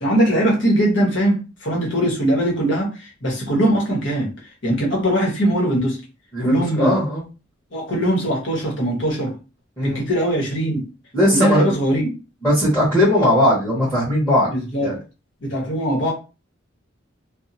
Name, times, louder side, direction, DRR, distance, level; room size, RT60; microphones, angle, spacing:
voice 1, 0.0-4.3 4.6-6.0 6.4-7.0 7.7-9.4 9.8-10.8 11.3-12.1 14.5-15.0 15.4-16.1, right 1 dB, 70° left, -1 dB, 1.1 m, -21 dB
voice 2, 6.3-7.2 9.8-10.0 11.1-11.7 12.4-14.5 14.8-14.9, left 1 dB, 10° left, -8 dB, 1.1 m, -18 dB
2.7 x 2.0 x 2.7 m, 0.30 s
head